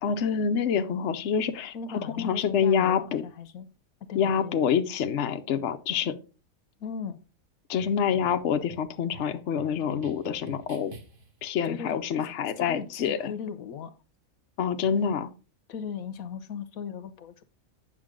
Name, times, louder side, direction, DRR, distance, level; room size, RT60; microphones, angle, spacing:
voice 1, 0.0-3.2 4.1-6.2 7.7-10.9 11.4-13.3 14.6-15.3, left 7 dB, 60° left, 1.0 m, -27 dB
voice 2, 1.7-3.7 4.1-4.7 6.8-7.2 11.6-12.3 12.6-14.0 15.7-17.4, left 6 dB, 85° left, 1.3 m, -38 dB
sound 1, 7.8-11.4, right 3 dB, 40° right, 1.4 m, -48 dB
8.8 x 6.7 x 3.7 m
omnidirectional pair, 1.4 m